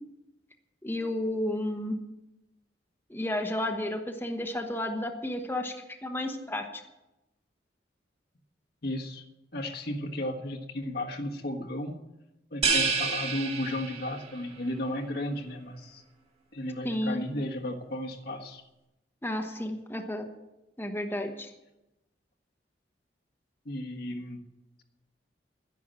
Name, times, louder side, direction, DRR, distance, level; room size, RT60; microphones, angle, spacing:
voice 1, 0.8-2.0 3.1-5.7 6.0-6.8 16.8-17.2 19.2-20.3 20.8-21.5, left 1 dB, 10° left, 4 dB, 1.0 m, -32 dB
voice 2, 8.8-9.2 9.5-12.0 12.5-16.0 16.5-18.6 23.6-24.4, left 1 dB, 60° left, 2 dB, 1.5 m, -34 dB
sound 1, 12.6-14.3, right 4 dB, 35° right, 1.8 m, -28 dB
12.0 x 10.5 x 7.6 m, 0.96 s
head